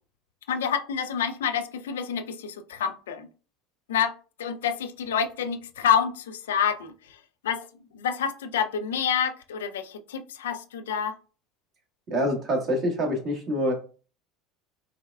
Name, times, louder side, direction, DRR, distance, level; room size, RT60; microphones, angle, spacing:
voice 1, 0.5-3.3 3.9-4.1 4.4-7.2 7.4-7.7 7.9-11.2, left 7 dB, 80° left, 9 dB, 0.3 m, -28 dB
voice 2, 12.1-13.7, equal, 45° right, 1 dB, 1.3 m, -26 dB
4.6 x 2.3 x 2.2 m, 0.37 s
hypercardioid pair, 75°, 0 cm